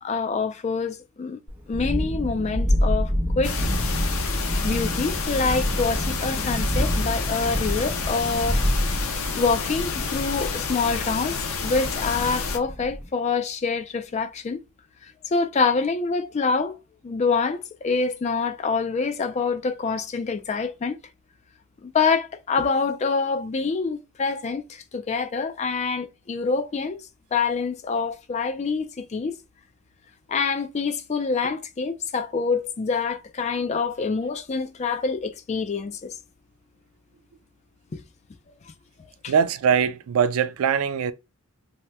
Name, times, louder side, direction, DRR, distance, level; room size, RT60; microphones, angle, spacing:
voice 1, 0.0-1.4 1.7-3.5 4.6-8.6 9.3-11.4 11.6-14.6 15.0-16.8 17.0-21.0 21.8-27.0 27.3-29.4 30.3-36.1 37.9-38.0 39.2-39.3, left 4 dB, 30° left, 0.3 m, -26 dB
Thunderstorm, 1.5-13.1, equal, 10° right, 0.9 m, -27 dB
sound 1, 3.4-12.6, left 5 dB, 80° left, 0.5 m, -29 dB
voice 2, 39.3-41.1, right 7 dB, 85° right, 0.3 m, -22 dB
2.8 x 2.1 x 3.3 m
head